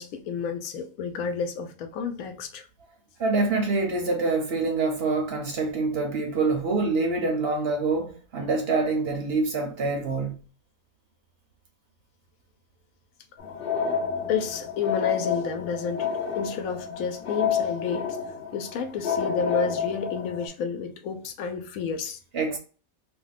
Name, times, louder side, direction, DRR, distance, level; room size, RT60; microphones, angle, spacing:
voice 1, 0.0-2.7 14.3-16.1 16.3-18.2 18.5-22.2 22.5-22.6, left 6 dB, 80° left, 1.0 m, -30 dB
voice 2, 3.2-10.4 22.3-22.6, right 3 dB, 55° right, 0.8 m, -26 dB
sound 1, 13.4-20.5, left 6 dB, 50° left, 0.8 m, -29 dB
2.6 x 2.2 x 3.9 m
omnidirectional pair, 1.4 m